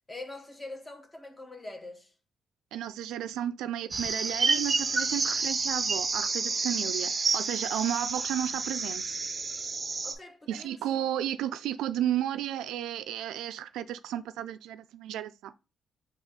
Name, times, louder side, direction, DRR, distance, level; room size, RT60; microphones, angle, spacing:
voice 1, 0.1-2.1 10.0-10.9, left 2 dB, 20° left, 1.0 m, -43 dB
voice 2, 2.7-9.2 10.5-15.5, right 11 dB, 85° right, 0.3 m, -33 dB
sound 1, 3.9-10.1, right 4 dB, 30° right, 0.5 m, -29 dB
3.9 x 2.4 x 3.6 m
cardioid pair, 90°, 0 cm